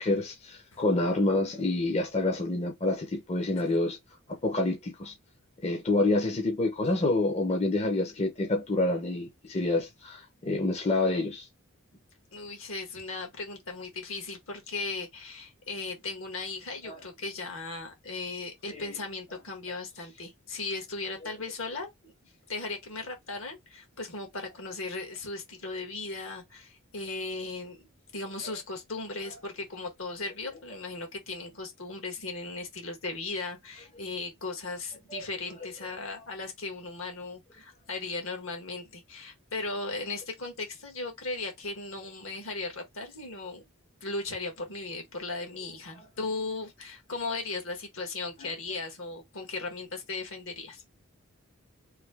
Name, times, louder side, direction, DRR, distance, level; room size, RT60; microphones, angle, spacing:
voice 1, 0.0-4.0 4.3-5.1 5.6-11.5 16.8-17.0 18.7-18.8 35.1-35.2, left 2 dB, 30° left, 0.7 m, -27 dB
voice 2, 12.3-22.1 22.5-27.8 28.1-43.6 44.0-50.8, left 3 dB, 70° left, 1.5 m, -37 dB
3.2 x 2.7 x 3.4 m
head